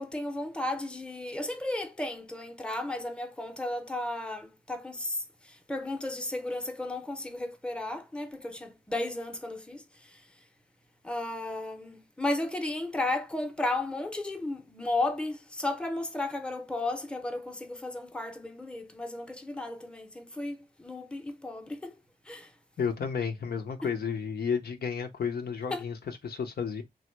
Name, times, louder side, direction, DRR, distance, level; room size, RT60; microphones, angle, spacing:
voice 1, 0.0-5.2 5.7-9.8 11.0-21.9 22.3-22.5 25.7-25.8, left 2 dB, 5° left, 0.6 m, -34 dB
voice 2, 22.8-26.8, left 6 dB, 70° left, 0.6 m, -32 dB
3.0 x 2.1 x 3.1 m
cardioid pair, 45°, 17 cm